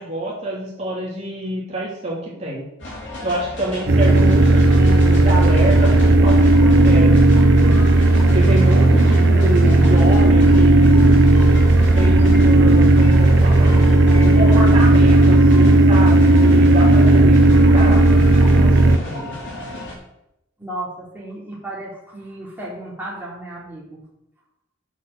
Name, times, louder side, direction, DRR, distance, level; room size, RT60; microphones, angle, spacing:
voice 1, 0.0-2.6 3.2-7.8 8.3-11.2 11.9-13.8 14.2-19.4, right 1 dB, 35° right, -5 dB, 3.1 m, -27 dB
sound 1, 2.8-19.9, left 1 dB, 60° left, 4.0 m, -33 dB
sound 2, 3.9-19.0, right 2 dB, 60° right, 0.7 m, -13 dB
voice 2, 20.6-24.0, right 1 dB, 10° right, -7 dB, 3.4 m, -34 dB
8.5 x 7.2 x 6.7 m, 0.84 s
head